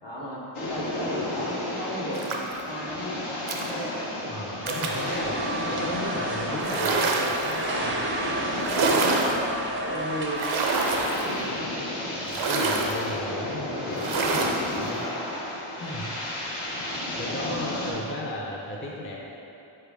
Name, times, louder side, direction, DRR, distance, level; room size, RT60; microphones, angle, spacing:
voice 1, 0.0-3.2 3.6-3.9 8.2-9.5 9.8-10.4 11.0-11.5 15.8-16.0 17.1-17.7, equal, 60° left, -5 dB, 1.1 m, -35 dB
sound 1, 0.5-17.9, left 1 dB, 80° left, 0.9 m, -33 dB
sound 2, 2.2-2.6 3.5-3.7 4.7-5.0 6.6-7.5 8.6-9.4 10.4-11.3 12.3-13.0 14.0-14.6, right 3 dB, 75° right, 0.6 m, -26 dB
voice 2, 4.3-7.6 12.2-15.1 15.9-16.1 16.9-19.2, left 1 dB, 25° left, -3 dB, 0.5 m, -35 dB
sound 3, 4.6-11.2, right 2 dB, 25° right, 0.4 m, -32 dB
4.1 x 3.4 x 3.5 m, 3.0 s
cardioid pair, 40°, 49 cm